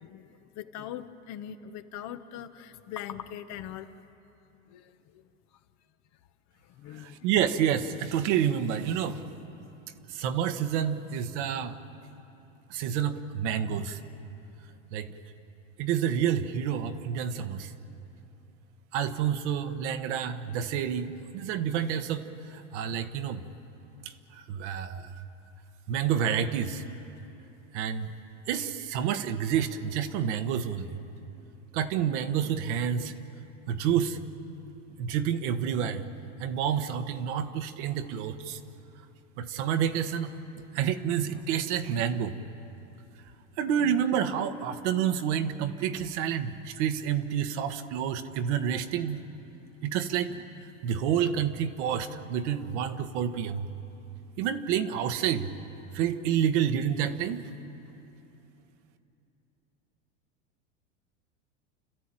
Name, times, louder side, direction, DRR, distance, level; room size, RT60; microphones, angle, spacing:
voice 1, 0.0-3.9 4.7-5.2 6.7-7.3, left 10 dB, 50° left, 10 dB, 1.1 m, -41 dB
voice 2, 6.9-9.2 10.1-11.8 12.7-14.0 14.9-15.1 15.8-17.7 18.9-23.4 24.3-25.1 25.9-26.8 27.7-28.1 28.5-31.0 31.7-33.1 33.7-34.2 35.0-36.0 36.4-38.6 39.4-40.3 40.7-42.3 43.6-49.2 49.8-50.4 50.8-53.7 54.4-55.5 55.9-57.4, right 8 dB, 65° right, 8 dB, 1.4 m, -29 dB
30.0 x 13.0 x 9.0 m, 3.0 s
hypercardioid pair, 105°, 37 cm